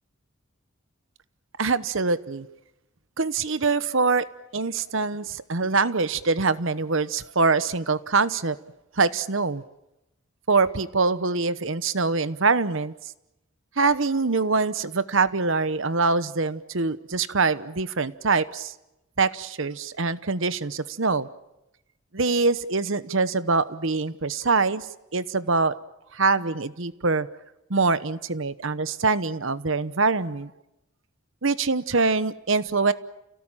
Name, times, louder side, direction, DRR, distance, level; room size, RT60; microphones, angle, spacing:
voice 1, 1.6-2.5 3.2-4.2 4.5-8.6 9.0-9.6 10.5-12.9 13.8-18.7 19.2-21.3 22.1-24.9 25.1-25.7 26.1-27.3 27.7-30.5 31.4-32.9, right 4 dB, 65° right, 15 dB, 1.0 m, -24 dB
29.5 x 17.5 x 9.0 m, 0.93 s
head